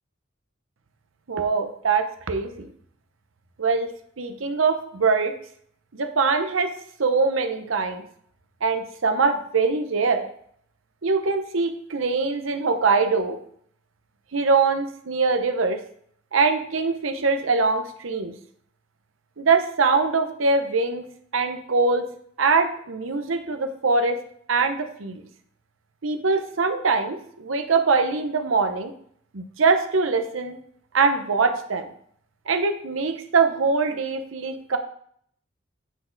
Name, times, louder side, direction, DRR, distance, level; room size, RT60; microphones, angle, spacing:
voice 1, 1.3-2.7 3.6-3.9 4.2-5.3 5.9-6.7 7.0-8.0 8.6-10.3 11.0-13.4 14.3-15.8 16.3-18.3 19.4-21.0 21.3-22.0 22.4-24.2 24.5-25.2 26.0-28.9 29.3-30.6 30.9-31.9 32.5-34.8, right 4 dB, 90° right, 8 dB, 0.8 m, -23 dB
8.2 x 4.2 x 3.9 m, 0.64 s
head